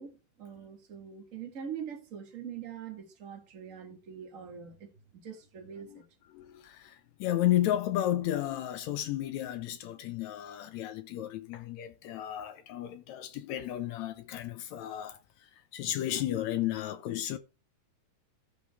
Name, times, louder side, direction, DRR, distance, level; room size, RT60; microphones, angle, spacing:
voice 1, 0.0-6.1, right 8 dB, 35° right, 1.3 m, -43 dB
voice 2, 6.3-15.2 15.7-17.4, left 13 dB, 75° left, 1.7 m, -33 dB
14.5 x 5.1 x 3.5 m
omnidirectional pair, 3.7 m